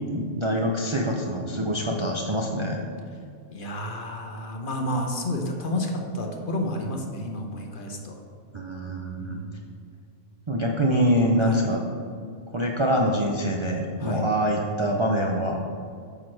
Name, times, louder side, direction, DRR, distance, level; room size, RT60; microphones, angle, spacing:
voice 1, 0.1-2.8 8.5-9.4 10.5-11.8 12.5-15.6, equal, 40° right, 0 dB, 0.4 m, -25 dB
voice 2, 3.5-8.1 9.2-9.7 11.4-11.6 14.0-14.2, left 1 dB, 50° left, 2 dB, 1.0 m, -31 dB
8.7 x 5.9 x 3.2 m, 2.3 s
omnidirectional pair, 1.2 m